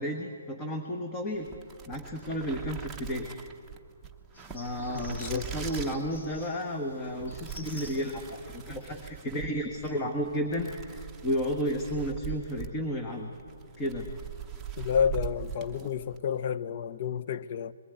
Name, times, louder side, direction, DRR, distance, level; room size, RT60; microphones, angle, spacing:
voice 1, 0.0-1.5 1.9-3.3 4.5-13.3 13.8-14.1, equal, 20° left, 1.4 m, -32 dB
sound 1, 1.3-16.3, right 8 dB, 10° right, 1.0 m, -42 dB
sound 2, 4.3-9.3, left 2 dB, 70° left, 6.1 m, -51 dB
voice 2, 4.9-5.5 14.8-17.7, left 7 dB, 45° left, 0.7 m, -30 dB
21.5 x 15.5 x 9.3 m
hypercardioid pair, 155°, 0 cm